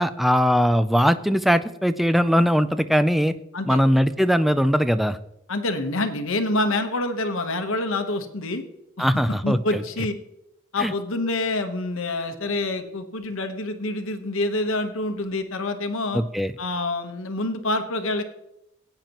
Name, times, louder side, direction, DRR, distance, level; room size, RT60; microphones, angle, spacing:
voice 1, 0.0-3.4 3.7-5.2 9.0-9.8 10.8-10.9 16.1-16.5, equal, ahead, 11 dB, 0.3 m, -20 dB
voice 2, 5.5-8.6 9.0-9.1 9.4-10.1 10.7-16.2 16.6-18.2, left 2 dB, 70° left, 7 dB, 1.1 m, -26 dB
16.5 x 9.0 x 3.0 m, 0.83 s
head